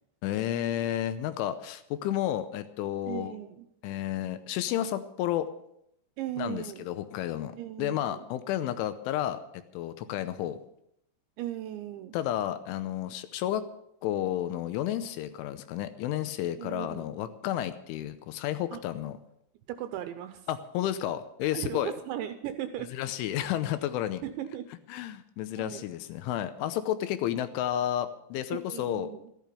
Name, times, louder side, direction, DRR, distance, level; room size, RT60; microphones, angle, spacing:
voice 1, 0.2-3.3 3.8-5.5 6.4-7.5 7.8-10.6 12.1-13.6 14.0-19.2 20.5-21.9 22.9-24.2 24.9-29.1, left 12 dB, 80° left, 11 dB, 3.1 m, -31 dB
voice 2, 3.1-3.7 6.2-6.9 7.6-8.3 11.4-12.2 16.6-17.1 18.7-18.8 19.7-20.5 21.5-22.9 24.2-24.6 25.6-25.8 28.5-29.3, right 12 dB, 80° right, 9 dB, 2.7 m, -37 dB
14.0 x 12.5 x 6.8 m, 0.76 s
omnidirectional pair, 5.9 m